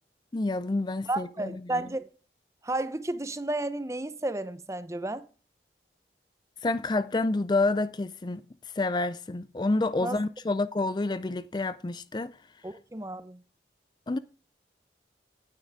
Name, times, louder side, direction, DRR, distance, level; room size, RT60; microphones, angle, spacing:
voice 1, 0.3-1.6 6.6-8.4 8.8-12.4 14.1-14.2, left 2 dB, 25° left, 0.4 m, -28 dB
voice 2, 1.1-2.1 2.6-5.2 10.0-10.2 12.6-13.4, right 2 dB, 15° right, 0.7 m, -32 dB
9.7 x 8.9 x 4.7 m
head